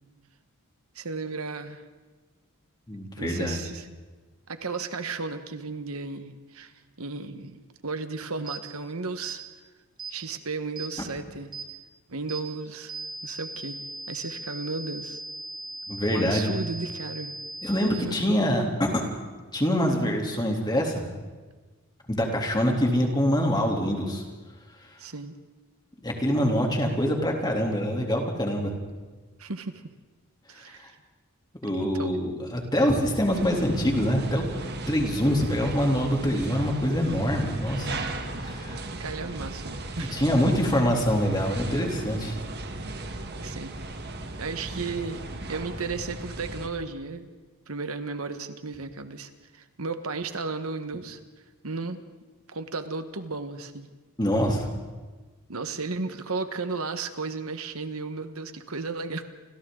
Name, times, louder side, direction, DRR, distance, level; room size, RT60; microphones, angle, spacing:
voice 1, 0.9-1.8 3.2-3.9 4.5-6.7 7.0-9.4 10.1-11.5 12.1-12.9 13.2-13.8 14.1-15.2 16.1-17.3 17.9-18.1 25.0-25.3 29.4-29.8 30.5-30.9 31.8-32.1 39.0-40.2 43.4-43.7 44.4-45.2 45.5-47.3 47.7-51.2 51.6-52.0 52.5-53.9 55.5-59.3, right 4 dB, 75° right, 8 dB, 1.4 m, -34 dB
voice 2, 2.9-3.6 15.9-16.5 17.6-18.9 19.5-21.0 22.1-24.2 26.0-28.7 31.6-37.9 38.4-38.8 40.0-42.4 54.2-54.7, equal, 20° left, 1 dB, 3.2 m, -25 dB
sound 1, 8.5-8.6 9.2-9.4 10.0-10.2 10.8-10.9 11.5-11.7 12.3-12.4 12.9-17.9, right 2 dB, 20° right, 4.8 m, -38 dB
sound 2, 33.3-46.7, right 2 dB, 45° right, 1.7 m, -36 dB
29.0 x 26.5 x 3.9 m, 1.3 s
head